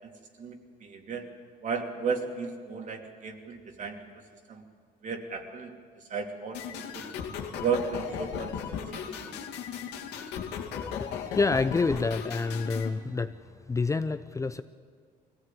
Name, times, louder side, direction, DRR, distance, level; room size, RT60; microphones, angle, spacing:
voice 1, 0.4-1.2 1.6-4.0 4.5-4.6 5.0-7.1 7.6-9.3, right 5 dB, 50° right, 4 dB, 2.8 m, -34 dB
sound 1, 6.5-12.9, left 7 dB, 85° left, 2.3 m, -36 dB
voice 2, 10.7-13.4 13.7-14.6, left 4 dB, 20° left, 10 dB, 0.6 m, -28 dB
22.0 x 16.5 x 9.2 m, 2.1 s
cardioid pair, 110°, 17 cm